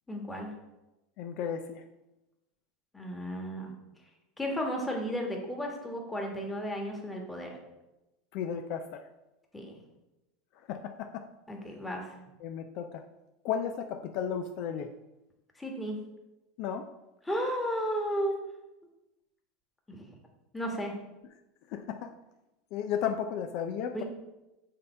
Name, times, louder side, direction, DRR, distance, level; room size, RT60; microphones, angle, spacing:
voice 1, 0.1-0.5 2.9-3.7 4.4-7.6 9.5-9.8 11.5-12.1 15.6-16.0 17.2-18.4 19.9-20.1 20.5-20.9 23.9-24.0, equal, 10° left, 0 dB, 1.4 m, -33 dB
voice 2, 1.2-1.8 8.3-9.1 10.7-11.3 12.4-13.0 13.4-14.9 16.6-16.9 21.7-22.1 22.7-24.0, left 8 dB, 60° left, 7 dB, 0.5 m, -34 dB
6.6 x 3.5 x 5.4 m, 0.98 s
supercardioid pair, 125°, 0 cm